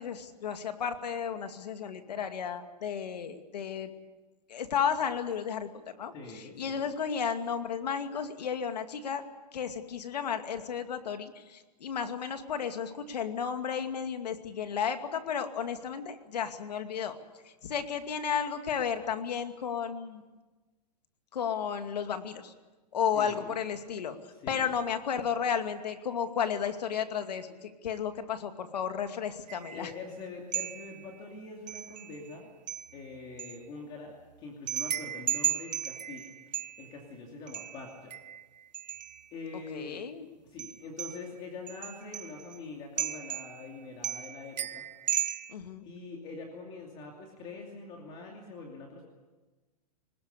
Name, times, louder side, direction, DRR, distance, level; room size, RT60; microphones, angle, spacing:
voice 1, 0.0-3.9 4.5-5.7 6.0-6.1 6.6-9.2 9.5-17.1 17.6-20.2 21.3-22.5 22.9-24.2 24.5-29.9 39.7-40.3 45.5-45.9, left 7 dB, 75° left, 7 dB, 2.4 m, -33 dB
voice 2, 6.1-6.9 23.1-23.6 24.3-24.7 29.7-32.5 32.9-38.2 39.3-40.0 40.4-44.8 45.8-49.0, left 3 dB, 25° left, 1 dB, 2.7 m, -44 dB
sound 1, 29.5-30.0 30.5-31.2 31.7-32.3 32.7-33.6 34.7-37.0 37.5-39.3 40.6-41.3 41.7-42.6 43.0-43.8 44.0-45.5, right 11 dB, 85° right, 1.2 m, -35 dB
22.0 x 20.0 x 8.3 m, 1.2 s
hypercardioid pair, 165°, 21 cm